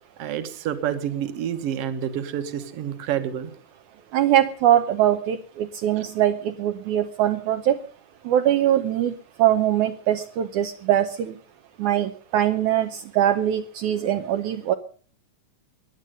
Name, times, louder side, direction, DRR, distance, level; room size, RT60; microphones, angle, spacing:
voice 1, 0.2-3.5 6.0-6.1, right 10 dB, 55° right, 9 dB, 2.1 m, -28 dB
voice 2, 4.1-7.8 8.3-9.1 9.4-11.3 11.8-14.7, right 11 dB, 75° right, 6 dB, 2.1 m, -22 dB
17.0 x 11.0 x 6.6 m, 0.43 s
omnidirectional pair, 3.8 m